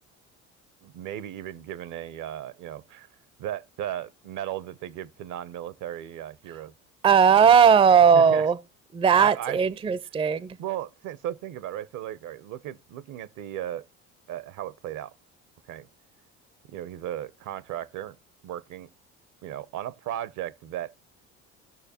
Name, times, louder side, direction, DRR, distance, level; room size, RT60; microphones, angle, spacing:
voice 1, 0.8-3.1 3.4-6.7 7.1-7.5 8.1-8.5 9.2-9.6 10.6-13.8 14.3-15.1 15.7-15.9 16.7-18.2 18.4-18.9 19.4-20.9, right 12 dB, 60° right, 0.7 m, -36 dB
voice 2, 7.0-8.6 8.9-10.6, right 7 dB, 15° right, 0.4 m, -18 dB
17.0 x 6.4 x 2.8 m
hypercardioid pair, 70°, 36 cm